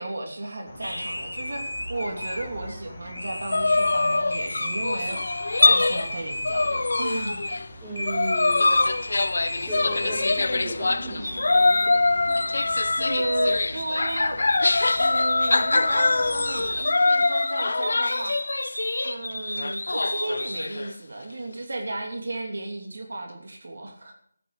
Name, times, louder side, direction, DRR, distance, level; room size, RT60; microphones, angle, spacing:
voice 1, 0.0-5.2 5.7-7.4 13.0-14.4 15.0-18.4 19.0-24.1, right 2 dB, 55° right, 2 dB, 2.9 m, -34 dB
sound 1, 0.7-16.8, left 1 dB, 25° left, 2.6 m, -43 dB
sound 2, 0.8-7.6 8.0-10.9 11.2-20.7, left 1 dB, 85° left, 2.2 m, -34 dB
sound 3, 3.5-6.1 6.4-7.7 8.0-19.2 19.6-20.9, left 3 dB, 55° left, 0.5 m, -23 dB
voice 2, 7.8-8.7 9.5-12.4, right 1 dB, 10° right, -7 dB, 4.3 m, -36 dB
15.0 x 11.0 x 4.9 m, 0.65 s
figure-of-eight pair, 160°, 0 cm